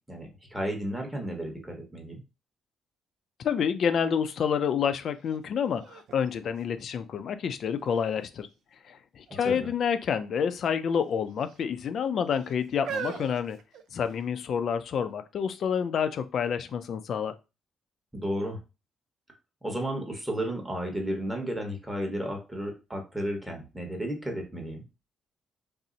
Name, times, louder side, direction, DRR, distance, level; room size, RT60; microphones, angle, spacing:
voice 1, 0.1-2.2 9.4-9.7 18.1-18.6 19.6-24.8, equal, 10° right, 2 dB, 1.0 m, -33 dB
voice 2, 3.4-8.5 8.9-13.6 13.9-17.3, left 7 dB, 60° left, 10 dB, 0.3 m, -28 dB
sound 1, 5.3-5.4 5.8-7.3 7.9-8.4 9.3-9.6 9.9-10.1 10.9-11.6 12.3-14.3 15.1-15.2, right 6 dB, 75° right, 0.4 m, -41 dB
2.7 x 2.0 x 3.8 m, 0.28 s
cardioid pair, 90°, 0 cm